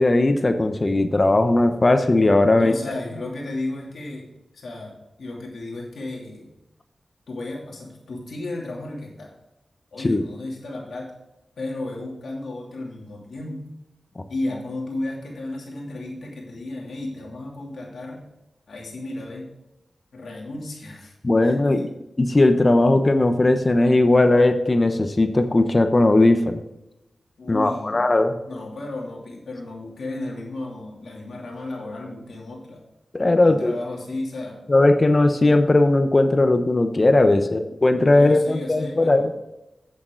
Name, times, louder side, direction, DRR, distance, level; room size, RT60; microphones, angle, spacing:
voice 1, 0.0-2.7 10.0-10.2 21.2-21.9 22.2-26.6 27.5-28.4 33.1-33.7 34.7-39.3, left 2 dB, 40° left, 8 dB, 0.9 m, -18 dB
voice 2, 2.5-6.5 7.3-9.3 9.9-11.2 11.6-13.6 14.3-18.2 18.7-19.5 20.1-21.1 21.4-21.9 27.4-28.0 28.4-32.8 33.4-34.6 37.3-37.7 38.1-39.3, left 2 dB, 85° left, -2 dB, 2.8 m, -33 dB
8.8 x 8.4 x 3.9 m, 0.94 s
cardioid pair, 55°, 0 cm